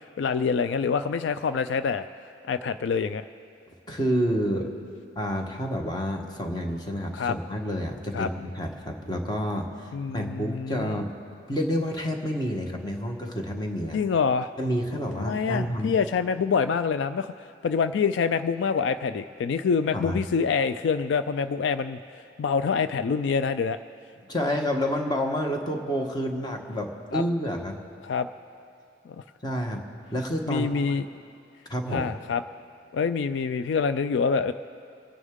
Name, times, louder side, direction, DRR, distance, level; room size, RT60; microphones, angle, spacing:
voice 1, 0.2-2.1 2.5-3.2 7.1-7.3 8.1-8.3 9.9-11.0 13.9-14.5 15.2-17.3 17.6-23.8 27.1-27.2 28.0-28.3 29.1-29.2 30.5-31.1 31.9-32.4 32.9-34.5, left 5 dB, 70° left, 11 dB, 0.3 m, -26 dB
voice 2, 3.9-4.7 5.2-11.1 11.5-14.0 14.6-15.9 19.9-20.2 24.2-27.8 29.4-29.8 30.1-30.8 31.7-32.1, equal, 20° left, 2 dB, 1.2 m, -29 dB
27.0 x 9.8 x 3.7 m, 2.4 s
head